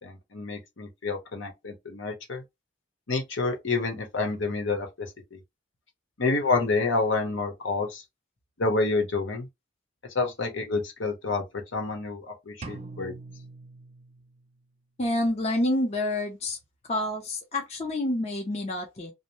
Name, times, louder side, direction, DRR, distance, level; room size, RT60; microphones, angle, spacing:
voice 1, 0.0-2.4 3.1-5.4 6.2-8.0 8.6-9.5 10.1-11.4 11.7-13.1, left 3 dB, 70° left, 0.8 m, -28 dB
sound 1, 12.6-14.6, right 3 dB, 35° right, 0.4 m, -43 dB
voice 2, 15.0-16.6 16.9-19.1, left 1 dB, 35° left, 0.6 m, -28 dB
2.6 x 2.0 x 3.0 m
head